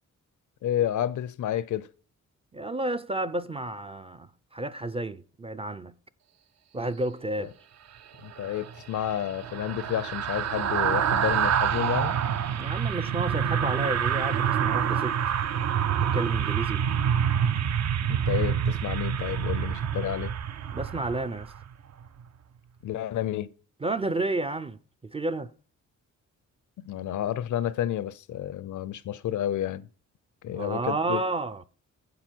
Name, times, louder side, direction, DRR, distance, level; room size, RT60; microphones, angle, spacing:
voice 1, 0.6-1.9 8.2-12.2 18.1-20.3 22.8-23.5 26.8-29.9 30.4-31.2, left 11 dB, 75° left, 0.6 m, -30 dB
voice 2, 2.5-6.0 6.7-7.5 12.6-15.2 16.0-16.8 20.7-21.5 23.8-25.5 30.6-31.6, right 2 dB, 20° right, 0.4 m, -31 dB
sound 1, 8.3-21.7 22.0-22.2, right 8 dB, 60° right, 0.6 m, -27 dB
10.5 x 7.5 x 4.5 m
cardioid pair, 125°, 30 cm